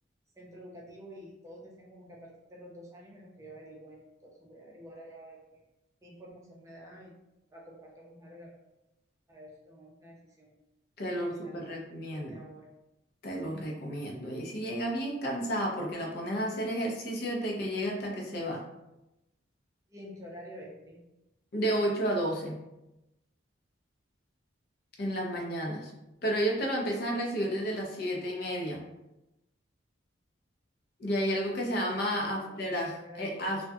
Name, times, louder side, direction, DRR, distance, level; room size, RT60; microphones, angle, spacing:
voice 1, 0.4-5.6 6.0-7.1 7.5-8.5 9.3-10.5 11.1-11.8 12.1-12.7 19.9-21.0 32.2-33.5, equal, 15° right, -3 dB, 0.5 m, -49 dB
voice 2, 11.0-12.4 13.2-18.6 21.5-22.6 25.0-25.9 26.2-28.8 31.0-33.6, equal, 50° left, -1 dB, 0.5 m, -31 dB
2.3 x 2.2 x 2.6 m, 0.94 s
head